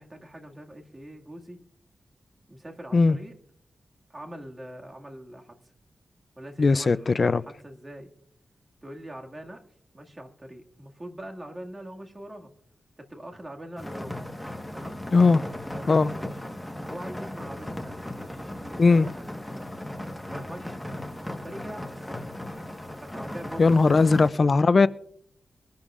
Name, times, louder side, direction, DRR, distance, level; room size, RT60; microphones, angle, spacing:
voice 1, 0.0-1.6 2.5-3.3 4.1-5.6 6.4-8.1 8.8-9.6 9.9-12.5 13.0-14.2 14.7-15.0 15.7-16.5 16.8-19.3 20.3-22.1 23.0-24.1 24.3-24.5, right 1 dB, 25° right, 2.0 m, -43 dB
voice 2, 6.6-7.4 15.1-15.4 15.9-16.1 18.8-19.1 23.6-24.9, left 4 dB, 50° left, 0.4 m, -19 dB
sound 1, 13.8-24.3, left 1 dB, 5° left, 1.3 m, -37 dB
23.0 x 11.5 x 2.5 m
wide cardioid pair, 85°, 0 cm